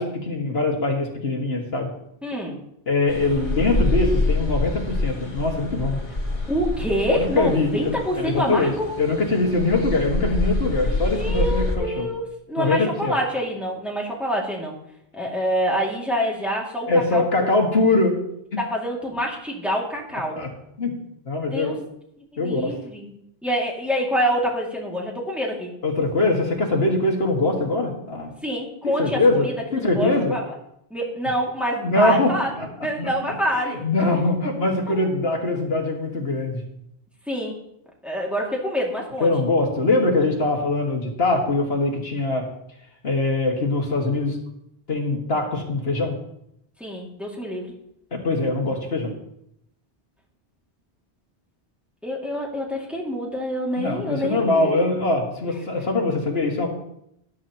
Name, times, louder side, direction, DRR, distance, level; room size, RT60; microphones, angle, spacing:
voice 1, 0.0-1.9 2.9-6.0 7.1-12.1 12.6-13.1 16.9-18.1 18.5-18.6 20.4-20.5 20.8-20.9 21.3-21.8 22.4-22.7 25.8-28.3 28.8-30.4 31.8-32.7 33.0-33.1 33.6-36.6 39.2-42.5 43.0-44.4 44.9-46.1 48.1-49.1 53.8-56.7, left 2 dB, 70° left, 1 dB, 2.0 m, -22 dB
voice 2, 2.2-2.6 6.5-8.9 10.9-14.8 15.1-17.5 18.6-20.4 21.5-21.8 22.3-23.1 23.4-25.7 28.4-30.6 30.9-32.5 32.8-33.8 34.9-35.1 37.3-37.5 38.0-39.3 46.8-47.7 52.0-54.8, equal, ahead, -2 dB, 2.2 m, -26 dB
sound 1, 3.1-11.8, left 2 dB, 50° left, 2.0 m, -26 dB
13.5 x 12.0 x 2.9 m, 0.77 s
omnidirectional pair, 1.1 m